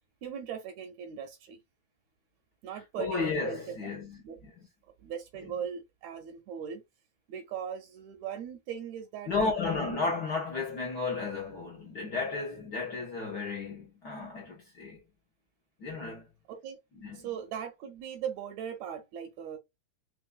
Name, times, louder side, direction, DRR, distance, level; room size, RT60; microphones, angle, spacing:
voice 1, 0.2-1.6 2.6-4.0 4.2-4.4 5.0-6.8 7.3-9.6 16.5-16.8 17.1-19.6, right 8 dB, 80° right, 1.8 m, -39 dB
voice 2, 3.0-4.2 9.3-15.0 15.8-16.3 17.0-17.3, left 4 dB, 65° left, 1.0 m, -33 dB
4.6 x 3.3 x 2.3 m
omnidirectional pair, 3.4 m